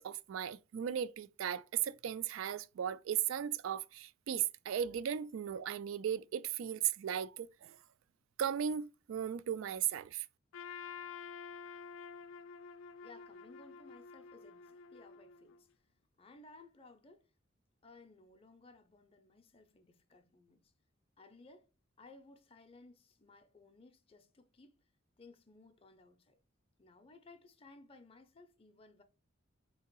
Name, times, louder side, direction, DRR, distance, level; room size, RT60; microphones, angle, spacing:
voice 1, 0.0-7.8 8.4-10.3, right 9 dB, 75° right, 0.3 m, -36 dB
Trumpet, 10.5-15.6, left 6 dB, 90° left, 0.4 m, -49 dB
voice 2, 13.0-15.7 16.2-17.3 17.8-20.7 21.2-21.7 22.0-24.8 25.2-26.4 26.8-29.0, left 3 dB, 30° left, 0.5 m, -59 dB
3.7 x 2.8 x 4.5 m
head